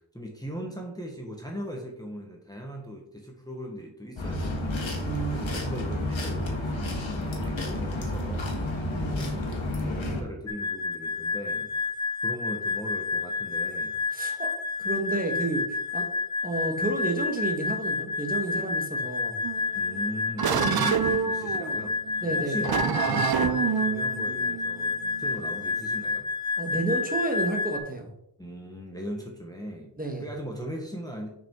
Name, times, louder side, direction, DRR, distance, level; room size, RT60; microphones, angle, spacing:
voice 1, 0.0-4.8 5.3-8.6 9.1-11.7 12.2-14.4 19.7-26.3 28.4-29.9 30.2-31.3, equal, 10° left, 1 dB, 1.2 m, -38 dB
sound 1, 4.2-10.2, left 1 dB, 85° left, 1.6 m, -30 dB
voice 2, 5.0-5.8 9.0-9.3 14.1-14.5 14.8-16.1 16.4-19.4 20.5-20.9 22.2-22.7 26.6-28.1 30.0-30.2, right 2 dB, 20° right, 2 dB, 1.3 m, -31 dB
sound 2, 10.5-27.8, left 4 dB, 40° left, 0.7 m, -30 dB
sound 3, 19.4-26.0, right 8 dB, 55° right, 0.5 m, -29 dB
6.2 x 5.4 x 3.7 m, 0.75 s
wide cardioid pair, 85°, 45 cm